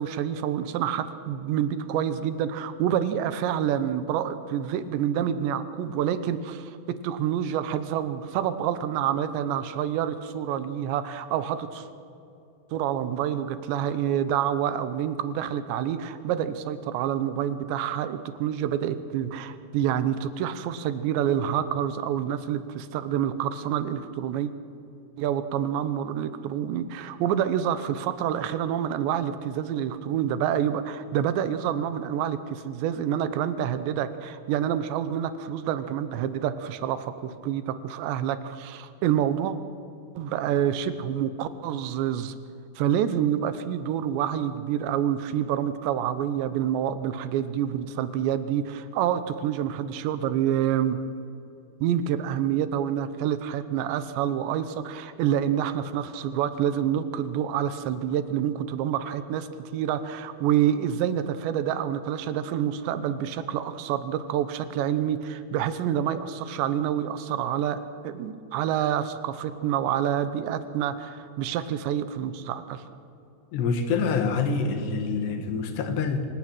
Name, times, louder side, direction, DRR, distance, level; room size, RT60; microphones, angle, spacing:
voice 1, 0.0-11.9 12.7-24.5 25.2-39.6 40.2-42.3 42.8-51.0 51.8-72.8, right 10 dB, 85° right, 12 dB, 3.3 m, -27 dB
voice 2, 73.5-76.3, left 5 dB, 75° left, 7 dB, 3.8 m, -26 dB
25.5 x 18.5 x 8.9 m, 2.8 s
omnidirectional pair, 5.0 m